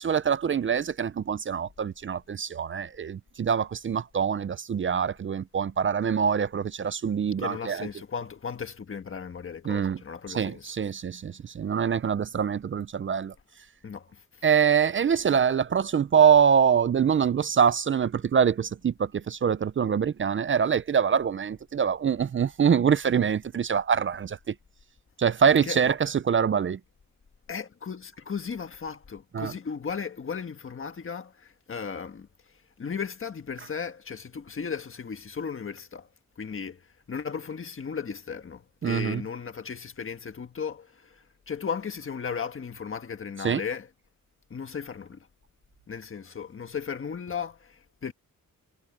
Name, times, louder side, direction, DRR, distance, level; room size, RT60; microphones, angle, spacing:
voice 1, 0.0-7.9 9.7-10.0 10.3-13.3 14.4-24.5 25.2-26.8 29.3-29.5 38.8-39.2 43.4-43.6, right 7 dB, 35° right, 0.4 m, -24 dB
voice 2, 7.4-10.7 13.8-14.2 25.6-25.8 27.5-32.3 32.8-36.1 36.4-36.8 37.1-43.9 44.5-45.2 45.9-48.1, left 6 dB, 40° left, 1.5 m, -36 dB
wide cardioid pair, 155°, 34 cm